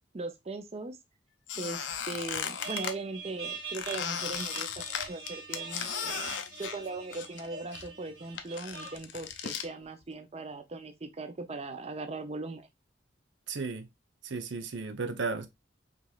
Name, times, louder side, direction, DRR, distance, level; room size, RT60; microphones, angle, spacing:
voice 1, 0.1-1.0 1.6-6.3 6.6-12.7, right 3 dB, 35° right, 0.5 m, -39 dB
Squeak, 1.5-2.9 3.7-7.5 7.7-9.7, left 8 dB, 85° left, 0.7 m, -36 dB
sound 1, 2.6-9.0, right 5 dB, 60° right, 1.7 m, -43 dB
voice 2, 13.5-13.9 14.2-15.5, right 4 dB, 85° right, 0.7 m, -34 dB
5.2 x 3.0 x 2.3 m
head